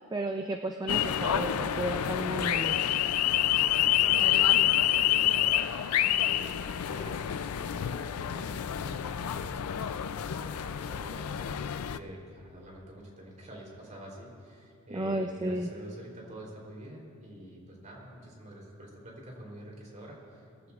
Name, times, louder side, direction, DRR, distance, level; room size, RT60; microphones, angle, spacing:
voice 1, 0.0-2.8 14.9-15.7, right 1 dB, 20° right, 5 dB, 0.4 m, -33 dB
sound 1, 0.9-12.0, left 11 dB, 85° left, 0.4 m, -28 dB
voice 2, 4.0-4.5 4.8-5.7 6.0-20.7, equal, 35° right, -2 dB, 3.5 m, -47 dB
21.0 x 14.0 x 2.5 m, 2.5 s
head